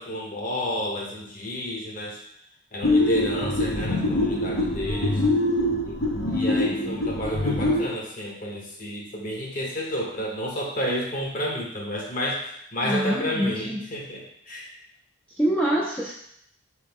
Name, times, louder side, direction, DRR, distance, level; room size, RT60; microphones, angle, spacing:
voice 1, 0.0-2.2 2.7-5.2 5.9-6.0 6.2-14.7, equal, 40° left, -2 dB, 0.8 m, -31 dB
sound 1, 2.8-7.9, left 2 dB, 85° left, 0.9 m, -24 dB
voice 2, 6.7-7.0 12.8-13.8 15.4-16.1, right 1 dB, 5° left, -6 dB, 0.3 m, -26 dB
3.1 x 3.1 x 3.5 m, 0.69 s
head